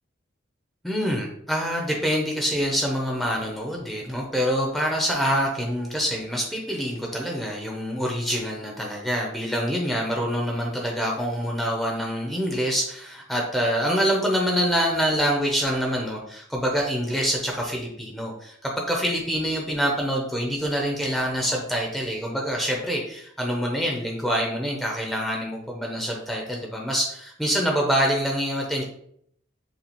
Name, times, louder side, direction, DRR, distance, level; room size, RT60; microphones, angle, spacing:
voice 1, 0.8-28.8, equal, ahead, -1 dB, 0.6 m, -26 dB
6.8 x 2.4 x 2.9 m, 0.69 s
head